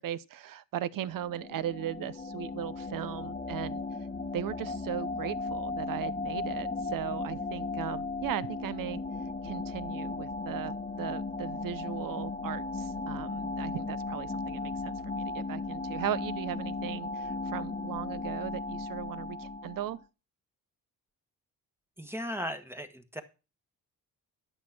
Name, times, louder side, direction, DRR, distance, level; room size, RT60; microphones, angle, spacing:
voice 1, 0.0-3.8 4.3-9.0 9.4-20.0, right 11 dB, 65° right, 0.8 m, -37 dB
sound 1, 1.1-20.0, left 3 dB, 20° left, 1.1 m, -36 dB
voice 2, 22.0-23.2, equal, 5° right, 1.3 m, -37 dB
11.0 x 6.4 x 5.9 m
cardioid pair, 95°, 36 cm